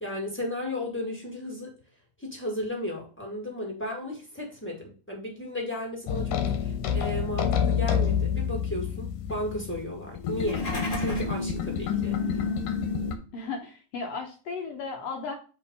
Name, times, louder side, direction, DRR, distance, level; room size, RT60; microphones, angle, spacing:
voice 1, 0.0-1.7 2.2-10.7 10.9-12.4, left 1 dB, 5° left, 0 dB, 0.9 m, -34 dB
sound 1, 6.1-13.2, left 7 dB, 90° left, 2.3 m, -28 dB
sound 2, 10.3-11.4, left 1 dB, 30° left, 1.8 m, -34 dB
voice 2, 13.3-15.3, left 4 dB, 70° left, 2 dB, 1.8 m, -35 dB
7.1 x 2.7 x 5.3 m, 0.37 s
omnidirectional pair, 3.5 m